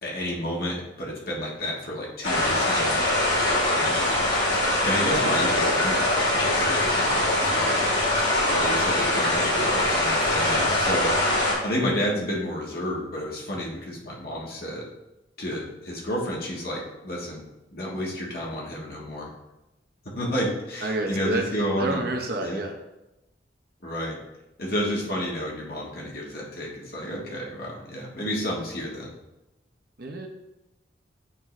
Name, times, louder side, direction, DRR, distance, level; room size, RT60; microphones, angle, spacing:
voice 1, 0.0-3.2 3.7-4.3 4.8-7.9 8.5-11.1 11.6-14.9 15.4-17.4 17.7-19.3 20.1-22.1 22.4-22.6 23.8-24.2 24.6-29.1, equal, 55° left, -3 dB, 1.5 m, -31 dB
sound 1, 2.2-11.5, left 1 dB, 70° left, 2.0 m, -23 dB
voice 2, 20.8-21.4 21.8-22.7 30.0-30.3, right 2 dB, 55° right, 3 dB, 0.9 m, -28 dB
8.9 x 3.7 x 3.2 m, 0.95 s
head